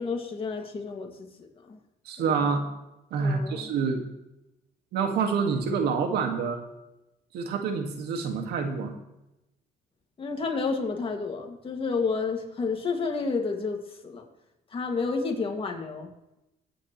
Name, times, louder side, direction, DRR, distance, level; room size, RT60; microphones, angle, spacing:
voice 1, 0.0-1.8 2.2-2.4 3.2-3.7 10.2-13.8 14.0-14.2 14.7-16.1, left 4 dB, 30° left, 2 dB, 2.2 m, -30 dB
voice 2, 2.1-2.7 3.1-4.1 4.9-6.6 7.3-8.9, right 5 dB, 75° right, 4 dB, 2.0 m, -27 dB
23.0 x 9.1 x 3.2 m, 0.92 s
cardioid pair, 110°, 17 cm